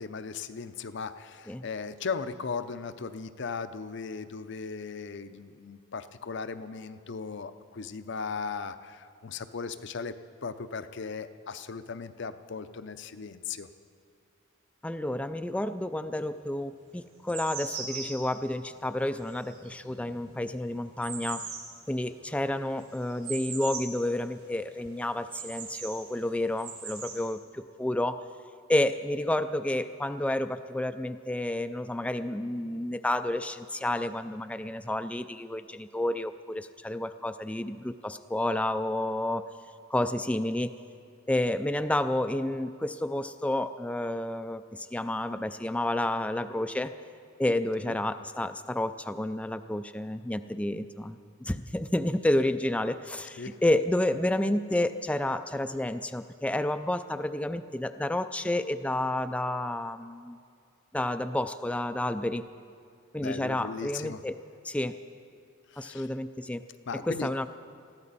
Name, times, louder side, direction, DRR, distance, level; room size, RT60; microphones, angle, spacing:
voice 1, 0.0-10.1 10.4-13.7 47.8-47.9 53.4-53.6 63.2-64.2 65.7-66.1 66.9-67.3, left 5 dB, 55° left, 11 dB, 0.6 m, -37 dB
voice 2, 14.8-21.5 21.9-28.2 28.7-39.5 39.9-40.7 41.3-46.9 47.4-60.4 60.9-62.5 63.1-64.4 64.6-65.0 65.8-66.7 67.1-67.5, left 1 dB, 5° left, 10 dB, 0.3 m, -30 dB
sound 1, 16.2-16.3 16.9-24.0 24.3-24.4 24.8-26.0 26.4-27.2, right 5 dB, 90° right, 4.3 m, -40 dB
21.0 x 14.5 x 4.1 m, 2.4 s
head